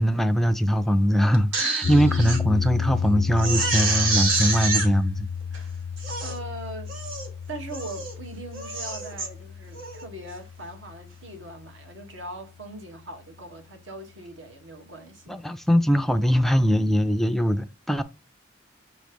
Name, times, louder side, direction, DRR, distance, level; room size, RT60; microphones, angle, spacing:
voice 1, 0.0-5.3 15.3-18.0, equal, ahead, 0.3 m, -21 dB
Crying sobbing, 1.3-2.4 2.8-2.9 3.3-4.9 5.5-5.6 6.0-6.4 6.9-7.3 7.7-8.1 8.5-9.3 9.7-10.0, right 3 dB, 85° right, 1.3 m, -27 dB
sound 1, 1.8-12.1, left 7 dB, 80° left, 0.5 m, -32 dB
voice 2, 6.2-7.0 7.5-15.4, right 1 dB, 65° right, 1.3 m, -40 dB
6.8 x 3.1 x 5.0 m
head